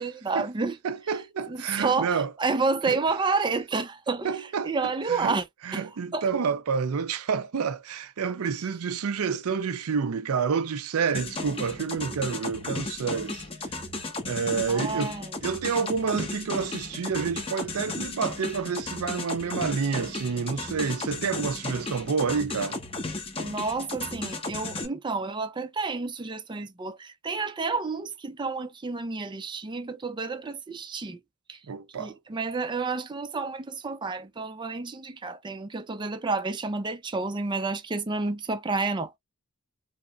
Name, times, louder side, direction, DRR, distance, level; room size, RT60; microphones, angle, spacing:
voice 1, 0.0-0.8 1.5-4.3 4.6-5.4 5.7-5.8 6.1-6.3 14.7-15.3 23.4-31.2 31.5-31.6 31.9-39.2, right 4 dB, 20° right, 0.5 m, -30 dB
voice 2, 0.8-2.3 2.9-3.0 4.2-4.7 5.1-5.4 5.6-13.4 14.2-15.2 15.4-22.8 31.7-32.1, right 6 dB, 90° right, 0.5 m, -29 dB
sound 1, 11.1-24.9, left 2 dB, 25° left, 1.1 m, -35 dB
4.8 x 2.1 x 2.3 m
head